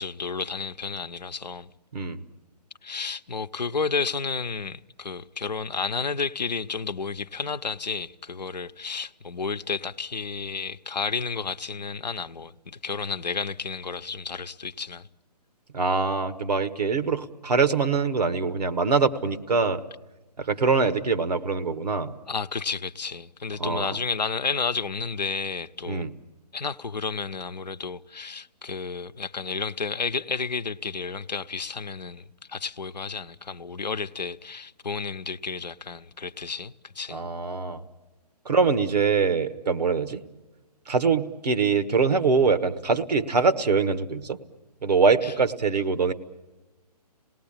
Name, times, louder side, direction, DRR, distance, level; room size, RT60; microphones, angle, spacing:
voice 1, 0.0-1.7 2.8-15.1 22.3-26.0 26.5-37.2 45.2-45.3, left 5 dB, 85° left, 0.8 m, -31 dB
voice 2, 15.7-19.8 20.4-22.1 23.6-23.9 25.9-26.1 37.1-37.8 38.4-40.2 40.9-44.4 44.8-46.1, right 4 dB, 75° right, 1.4 m, -23 dB
27.0 x 19.0 x 8.8 m
figure-of-eight pair, 135°, 21 cm